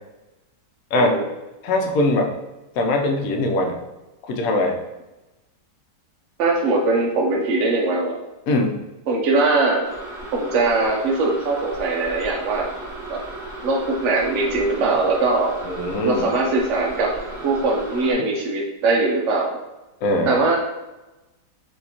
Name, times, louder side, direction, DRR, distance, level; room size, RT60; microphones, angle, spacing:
voice 1, 0.9-1.3 6.4-8.2 9.1-9.9 10.3-12.7 13.1-13.2 13.6-15.6 16.0-17.1 17.4-19.5 20.3-20.6, right 3 dB, 70° right, -1 dB, 0.6 m, -21 dB
voice 2, 1.6-2.3 2.8-3.8 4.3-4.8 8.5-8.8 15.7-16.2 20.0-20.4, left 2 dB, 65° left, 3 dB, 0.9 m, -21 dB
sound 1, 9.8-18.1, right 1 dB, 45° right, 1.2 m, -35 dB
4.5 x 2.8 x 2.8 m, 1.0 s
omnidirectional pair, 1.8 m